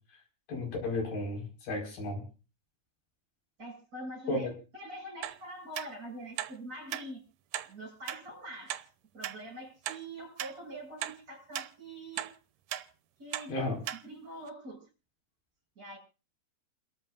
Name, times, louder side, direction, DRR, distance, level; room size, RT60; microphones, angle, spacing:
voice 1, 0.5-2.2 4.3-4.5 13.5-13.8, left 2 dB, 75° left, 1 dB, 6.5 m, -33 dB
voice 2, 3.6-4.5 4.7-7.2 7.6-8.8 9.1-12.3 13.2-13.6 14.0-14.8 15.8-16.0, right 1 dB, 25° right, -1 dB, 8.0 m, -44 dB
sound 1, 5.2-5.4 5.7-5.9 6.4-6.5 6.9-7.0 7.5-7.7 8.1-8.2 8.7-8.8 9.2-9.4 9.9-10.0 10.4-10.5 11.0-11.2 11.5-11.7 12.2-12.3 12.7-12.8 13.3-13.5 13.9-14.0 14.5-14.6, right 13 dB, 75° right, 2.3 m, -36 dB
29.5 x 13.5 x 2.5 m, 0.35 s
omnidirectional pair, 4.0 m